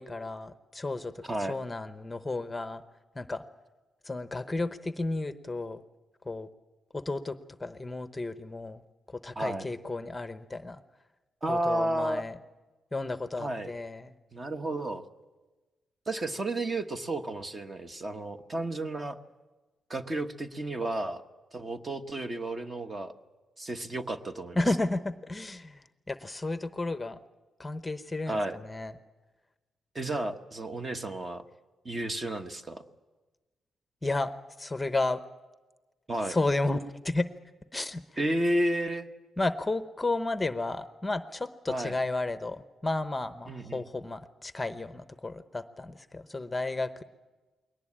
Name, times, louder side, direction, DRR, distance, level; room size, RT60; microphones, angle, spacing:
voice 1, 0.0-2.8 3.2-3.4 4.0-5.8 6.3-6.5 6.9-8.8 9.1-10.8 11.5-12.4 12.9-14.1 24.6-27.2 27.6-28.4 28.6-28.9 34.0-34.3 34.6-35.2 36.3-37.3 37.7-38.0 39.4-47.0, left 2 dB, 15° left, 11 dB, 0.8 m, -32 dB
voice 2, 1.2-1.6 9.3-9.7 11.4-12.2 13.4-13.7 14.3-15.0 16.1-19.2 19.9-21.2 21.5-23.1 23.6-24.6 28.3-28.6 29.9-31.4 31.8-32.8 36.1-36.4 38.2-39.1 41.7-42.0 43.5-43.8, right 1 dB, 30° right, 8 dB, 1.2 m, -32 dB
21.5 x 18.5 x 8.7 m, 1.2 s
cardioid pair, 115°, 0 cm